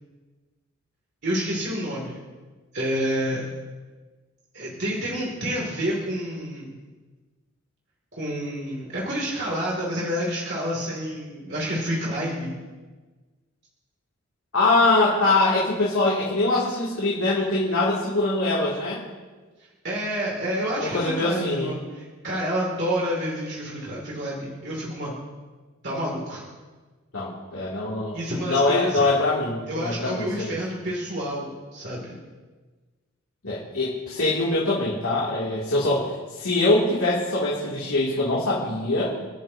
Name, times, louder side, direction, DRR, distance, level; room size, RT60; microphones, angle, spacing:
voice 1, 1.2-2.2 2.7-3.5 4.5-6.8 8.2-12.6 19.8-25.2 25.8-26.5 28.1-29.1 29.7-32.2, equal, 50° right, -3 dB, 2.7 m, -29 dB
voice 2, 14.5-19.0 20.8-21.7 27.1-28.2 28.5-30.5 33.4-39.1, left 2 dB, 85° left, -7 dB, 2.8 m, -23 dB
29.5 x 10.5 x 2.9 m, 1.3 s
head